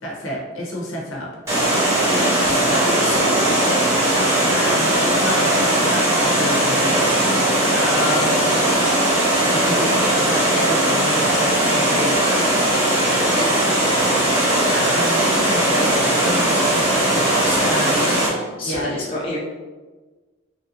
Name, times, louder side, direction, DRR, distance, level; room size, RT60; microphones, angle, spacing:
voice 1, 0.0-1.6 4.5-7.3 7.7-8.5 9.5-12.5 14.3-18.1 18.6-18.9, left 1 dB, 85° left, -4 dB, 0.9 m, -30 dB
Water, 1.5-18.3, right 1 dB, 15° right, 0.8 m, -18 dB
voice 2, 2.0-3.8 13.3-13.6 17.4-19.4, left 1 dB, 25° left, -6 dB, 0.5 m, -29 dB
3.2 x 2.7 x 2.7 m, 1.3 s
head